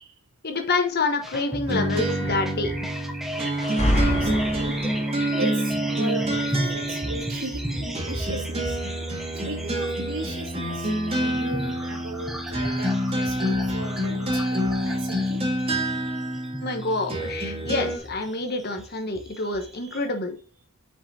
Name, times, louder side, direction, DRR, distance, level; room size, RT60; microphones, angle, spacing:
voice 1, 0.4-2.9 16.6-20.3, left 3 dB, 45° left, 5 dB, 1.2 m, -27 dB
sound 1, 1.2-20.0, equal, ahead, 0.9 m, -36 dB
sound 2, 1.7-18.0, right 1 dB, 25° right, 1.7 m, -27 dB
sound 3, 3.5-5.2, equal, 30° left, 2.1 m, -25 dB
voice 2, 4.0-4.7 5.4-8.8 9.4-15.4 19.3-20.0, right 2 dB, 75° right, -2 dB, 2.3 m, -37 dB
6.0 x 5.4 x 4.1 m, 0.37 s
head